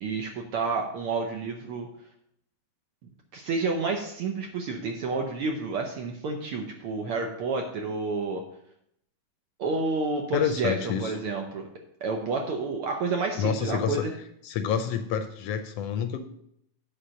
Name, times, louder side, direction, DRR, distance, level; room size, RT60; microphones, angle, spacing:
voice 1, 0.0-1.9 3.3-8.4 9.6-11.7 12.0-14.1, right 3 dB, 70° right, 2 dB, 1.4 m, -30 dB
voice 2, 10.3-11.1 13.4-14.0 14.4-16.2, left 8 dB, 75° left, 8 dB, 1.5 m, -28 dB
8.6 x 5.0 x 6.2 m, 0.74 s
omnidirectional pair, 3.3 m